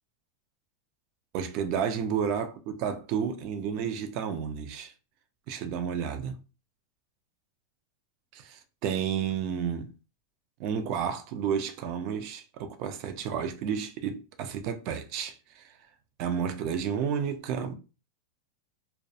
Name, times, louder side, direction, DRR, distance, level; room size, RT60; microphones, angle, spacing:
voice 1, 1.3-4.9 5.5-6.4 8.3-9.9 10.6-15.7 16.2-17.7, right 7 dB, 40° right, 0.4 m, -31 dB
2.3 x 2.1 x 2.6 m
supercardioid pair, 160°, 0 cm